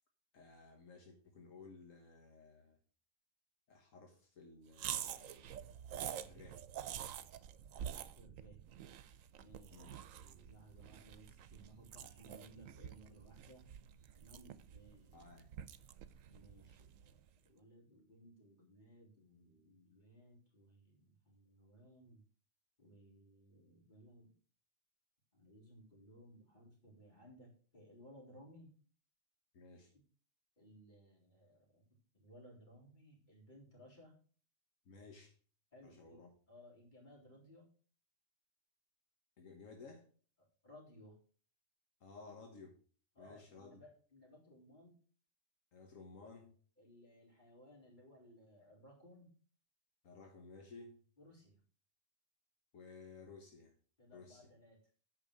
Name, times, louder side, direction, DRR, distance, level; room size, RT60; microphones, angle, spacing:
voice 1, 0.3-2.8 3.7-5.7 6.2-6.6 9.7-10.0 15.1-15.5 29.5-29.9 34.8-35.3 35.8-36.3 39.4-40.1 42.0-42.7 43.2-43.8 45.7-46.5 50.0-51.0 52.7-53.7 54.1-54.5, left 4 dB, 80° left, 3 dB, 1.7 m, -56 dB
sound 1, 4.7-17.2, right 10 dB, 90° right, 1.1 m, -48 dB
voice 2, 7.8-8.6 9.3-9.9 10.1-13.6 14.1-15.3 16.3-22.2 22.8-24.3 25.3-28.7 29.9-30.0 30.6-31.9 32.1-34.1 35.7-36.2 36.5-37.7 40.6-41.2 43.2-45.0 46.8-49.3 51.2-51.6 54.0-54.8, equal, 35° left, -3 dB, 4.0 m, -61 dB
9.0 x 5.4 x 6.5 m, 0.43 s
omnidirectional pair, 1.3 m